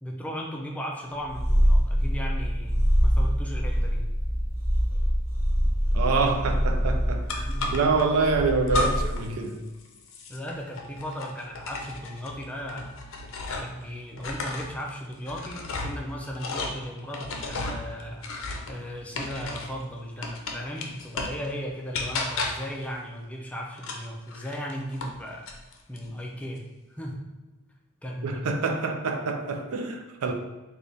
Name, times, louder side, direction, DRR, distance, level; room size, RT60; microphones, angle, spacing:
voice 1, 0.0-4.0 7.3-7.7 10.3-12.9 13.6-18.3 18.7-25.5 25.9-26.6 26.9-27.3 28.0-28.4, equal, 5° left, -1 dB, 0.4 m, -36 dB
Purr, 1.2-9.3, equal, 10° right, 0.9 m, -24 dB
voice 2, 5.9-9.6 28.2-30.3, right 4 dB, 85° right, 5 dB, 0.4 m, -26 dB
sound 1, 7.3-8.1 8.7-9.3 9.5-13.8 14.1-19.8 20.2-21.5 21.9-22.8 23.8-25.2 25.5-26.1, left 2 dB, 65° left, 0.5 m, -34 dB
3.3 x 2.4 x 3.9 m, 1.1 s
head